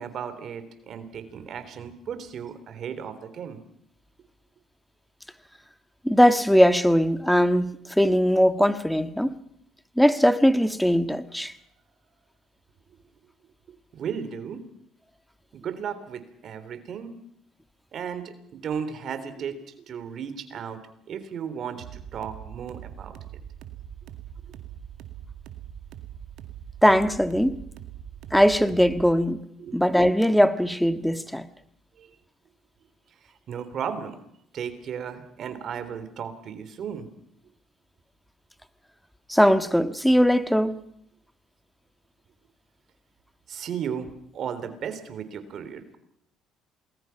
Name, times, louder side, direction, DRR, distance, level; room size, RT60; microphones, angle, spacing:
voice 1, 0.0-3.6 13.9-14.6 15.5-17.2 17.9-19.6 19.9-20.8 21.1-23.2 29.6-29.8 32.0-32.1 33.5-34.2 34.5-37.1 43.5-46.0, right 7 dB, 55° right, 3.6 m, -35 dB
voice 2, 6.0-9.3 10.0-11.5 26.8-27.6 28.3-29.4 29.7-31.4 39.3-40.8, equal, ahead, 1.6 m, -20 dB
sound 1, 21.8-29.2, right 10 dB, 75° right, 2.2 m, -42 dB
28.0 x 20.5 x 5.9 m
supercardioid pair, 85°, 0 cm